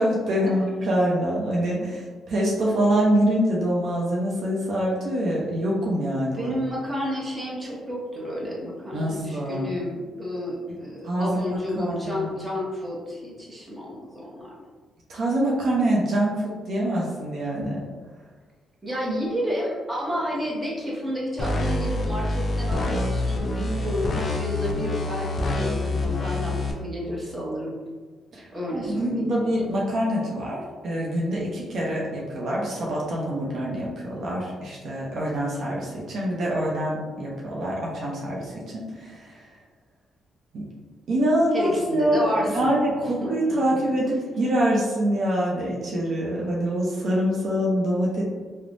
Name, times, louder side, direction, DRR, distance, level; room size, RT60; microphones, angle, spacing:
voice 1, 0.0-6.6 8.9-9.7 11.0-12.3 15.1-17.8 28.3-39.5 40.5-40.6 41.1-48.2, right 1 dB, 65° right, -4 dB, 0.6 m, -25 dB
voice 2, 6.4-14.6 18.8-27.8 28.5-29.3 41.5-42.7 43.2-43.3 43.7-43.8, equal, 15° right, -5 dB, 0.8 m, -30 dB
sound 1, 21.4-26.7, left 2 dB, 40° left, 0.4 m, -26 dB
3.1 x 2.0 x 2.5 m, 1.4 s
cardioid pair, 90°, 0 cm